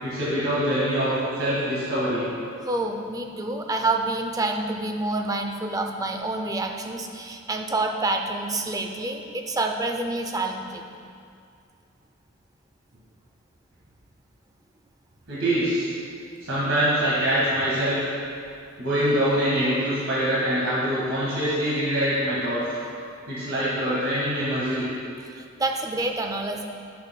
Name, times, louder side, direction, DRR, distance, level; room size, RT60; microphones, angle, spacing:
voice 1, 0.0-2.3 15.3-15.9 16.4-18.0 18.8-22.6 23.3-24.9, equal, 85° right, -9 dB, 1.7 m, -24 dB
voice 2, 2.6-10.9 25.4-26.6, right 2 dB, 20° right, 3 dB, 0.4 m, -28 dB
10.0 x 6.5 x 2.2 m, 2.4 s
head